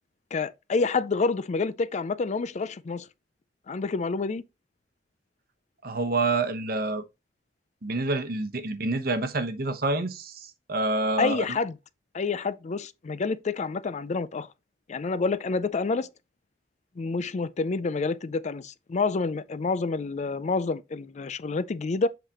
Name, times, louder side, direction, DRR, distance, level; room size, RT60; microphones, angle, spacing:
voice 1, 0.3-3.1 3.7-4.4 11.2-11.8 12.1-14.5 14.9-16.1 17.0-22.1, left 4 dB, 40° left, 0.4 m, -28 dB
voice 2, 5.8-7.0 7.8-11.4, right 2 dB, 60° right, 1.0 m, -27 dB
7.7 x 4.9 x 3.0 m
head